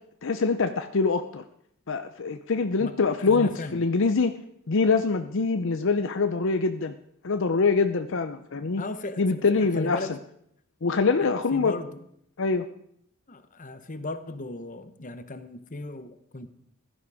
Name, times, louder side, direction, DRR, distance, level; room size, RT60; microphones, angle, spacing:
voice 1, 0.2-1.4 1.9-4.3 4.7-7.0 7.2-8.8 9.2-10.0 10.8-11.7 12.4-12.6, left 4 dB, 65° left, 8 dB, 0.7 m, -24 dB
voice 2, 3.2-3.9 8.8-9.2 9.7-10.2 11.2-12.0 13.3-16.5, left 2 dB, 40° left, 10 dB, 1.0 m, -37 dB
15.5 x 12.5 x 4.9 m, 0.71 s
head